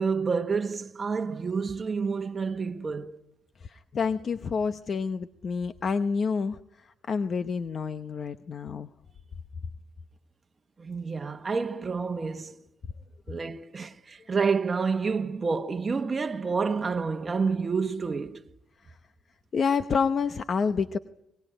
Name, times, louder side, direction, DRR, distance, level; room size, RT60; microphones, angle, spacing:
voice 1, 0.0-3.2 10.8-12.6 13.3-18.4, right 5 dB, 35° right, 1.2 m, -29 dB
voice 2, 3.6-8.9 18.9-19.0 19.5-21.0, left 5 dB, 50° left, 0.9 m, -28 dB
22.5 x 20.5 x 9.0 m
cardioid pair, 85°, 0 cm